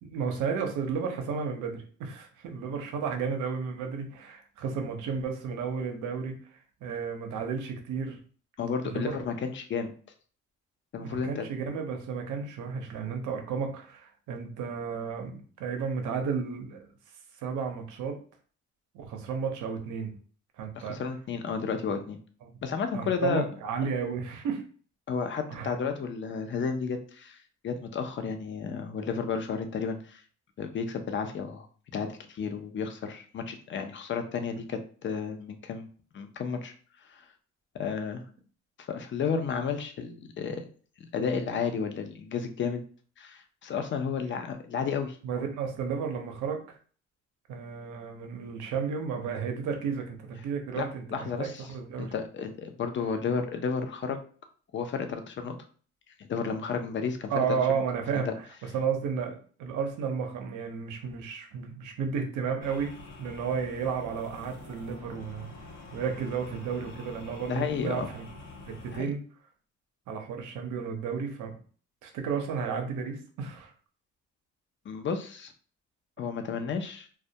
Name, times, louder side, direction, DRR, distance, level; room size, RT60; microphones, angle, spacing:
voice 1, 0.0-6.3 6.8-8.2 8.8-9.2 11.0-16.9 17.4-18.2 18.9-20.1 20.6-21.0 22.5-22.6 22.9-24.6 25.5-25.7 45.2-46.6 47.5-52.1 57.3-62.9 63.2-65.5 65.9-68.3 68.7-69.2 70.1-71.6 72.0-73.7, right 6 dB, 85° right, 4 dB, 0.6 m, -33 dB
voice 2, 8.6-9.9 10.9-11.5 20.8-22.2 22.6-23.4 25.1-27.4 27.6-30.2 30.6-31.7 31.9-35.9 36.1-36.7 37.0-37.3 37.7-38.2 38.8-40.6 41.0-42.8 43.2-45.2 50.7-50.9 51.1-51.7 52.0-54.2 54.7-55.6 56.2-57.3 67.5-68.1 68.9-69.1 74.9-75.5 76.2-77.1, left 5 dB, 40° left, 7 dB, 0.5 m, -32 dB
sound 1, 62.6-69.0, left 2 dB, 70° left, 0.8 m, -46 dB
2.2 x 2.1 x 2.7 m, 0.42 s
cardioid pair, 90°, 30 cm